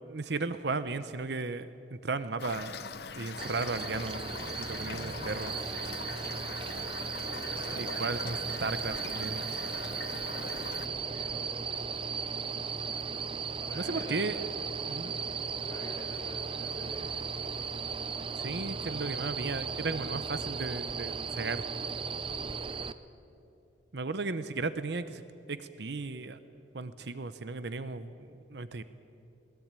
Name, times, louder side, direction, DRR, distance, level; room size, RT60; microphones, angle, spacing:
voice 1, 0.0-2.7 3.1-5.5 7.8-9.5 13.8-14.4 14.9-15.1 18.4-21.6 23.9-25.2 25.5-26.4 26.7-28.8, right 3 dB, 60° right, 13 dB, 0.8 m, -35 dB
Toilet flush / Fill (with liquid), 2.4-10.9, left 5 dB, 55° left, 0.9 m, -42 dB
sound 1, 3.4-22.9, right 5 dB, 30° right, 0.6 m, -36 dB
voice 2, 4.9-5.8 7.3-8.7 10.3-12.0 13.5-14.7 15.0-17.6 22.2-22.6, left 1 dB, 20° left, -3 dB, 6.1 m, -48 dB
21.5 x 19.5 x 8.9 m, 2.8 s
head